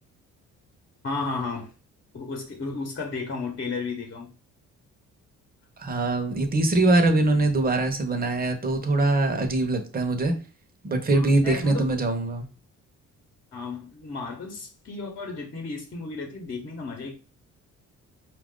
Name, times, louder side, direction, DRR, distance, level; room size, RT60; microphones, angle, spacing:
voice 1, 1.0-1.7 2.1-4.3 11.4-11.9 13.5-17.2, left 4 dB, 40° left, 1 dB, 1.0 m, -33 dB
voice 2, 5.8-10.3 10.8-12.5, right 2 dB, 30° right, 5 dB, 0.9 m, -23 dB
4.4 x 2.5 x 3.7 m, 0.36 s
cardioid pair, 90°, 30 cm